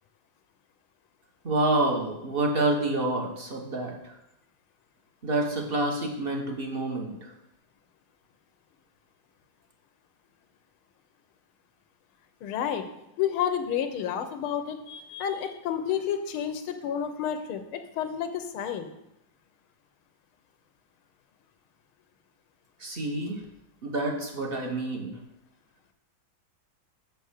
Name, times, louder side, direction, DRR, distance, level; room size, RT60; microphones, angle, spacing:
voice 1, 1.4-4.2 5.2-7.3 22.8-23.4 23.8-25.2, right 2 dB, 30° right, 1 dB, 1.3 m, -28 dB
voice 2, 12.4-12.9 13.2-18.9, left 9 dB, 85° left, 8 dB, 1.7 m, -30 dB
6.9 x 6.1 x 6.5 m, 0.84 s
omnidirectional pair, 2.3 m